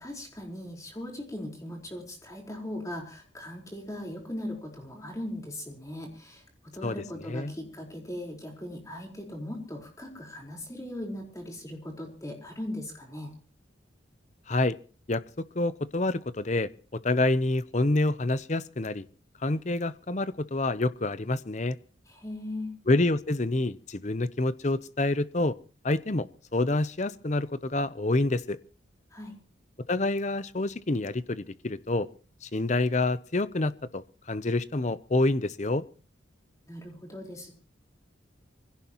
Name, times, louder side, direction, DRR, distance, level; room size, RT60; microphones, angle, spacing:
voice 1, 0.0-13.3 22.1-22.7 29.1-29.4 36.7-37.5, left 1 dB, 15° left, 0 dB, 4.3 m, -39 dB
voice 2, 15.1-19.1 19.4-21.8 22.9-25.6 25.8-28.6 29.9-32.1 32.4-35.8, left 2 dB, 35° left, 15 dB, 0.7 m, -27 dB
24.5 x 16.5 x 3.0 m, 0.41 s
head